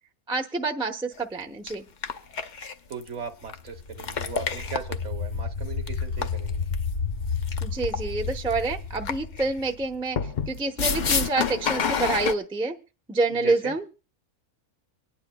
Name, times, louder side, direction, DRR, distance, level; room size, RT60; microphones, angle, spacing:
voice 1, 0.3-1.8 7.6-12.8 13.1-13.9, right 3 dB, 5° right, 3 dB, 0.5 m, -27 dB
sound 1, 1.2-1.3 1.7-1.8 2.0-3.1 3.5-3.6 4.0-5.0 5.9-6.7 7.4-8.0 8.3-8.5 9.1-9.5 10.2-12.3, left 6 dB, 60° left, 0.5 m, -28 dB
voice 2, 2.9-6.6 13.3-13.7, right 6 dB, 55° right, 5 dB, 1.3 m, -38 dB
sound 2, 3.5-10.3, left 5 dB, 35° left, 0.8 m, -32 dB
24.5 x 9.6 x 2.2 m, 0.34 s
omnidirectional pair, 1.5 m